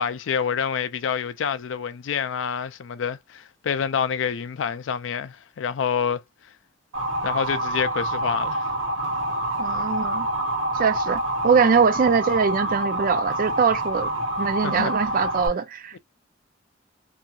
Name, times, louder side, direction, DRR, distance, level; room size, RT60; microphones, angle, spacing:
voice 1, 0.0-6.2 7.2-8.6 14.6-14.9, left 7 dB, 70° left, 0.4 m, -27 dB
Motor vehicle (road) / Siren, 6.9-15.5, right 1 dB, 85° right, 1.1 m, -27 dB
voice 2, 9.6-10.3 10.7-14.1 14.4-16.0, right 6 dB, 45° right, 0.4 m, -22 dB
2.9 x 2.6 x 2.3 m
head